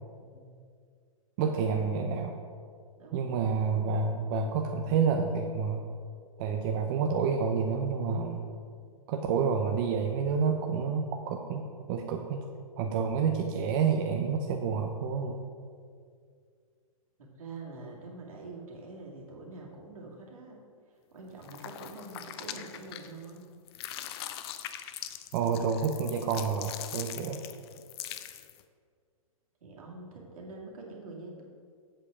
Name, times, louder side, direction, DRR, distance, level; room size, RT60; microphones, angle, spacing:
voice 1, 0.2-0.6 3.0-3.3 17.4-20.6 21.1-23.5 29.6-31.4, right 3 dB, 70° right, -2 dB, 2.3 m, -45 dB
voice 2, 1.4-2.4 3.1-5.8 6.4-8.5 9.1-11.6 11.9-12.4 12.8-15.4 25.3-27.4, right 6 dB, 35° right, 3 dB, 0.6 m, -29 dB
sound 1, 21.4-23.4 23.7-28.6, left 11 dB, 45° left, 0.6 m, -42 dB
7.7 x 6.8 x 4.9 m, 2.1 s
hypercardioid pair, 125°, 19 cm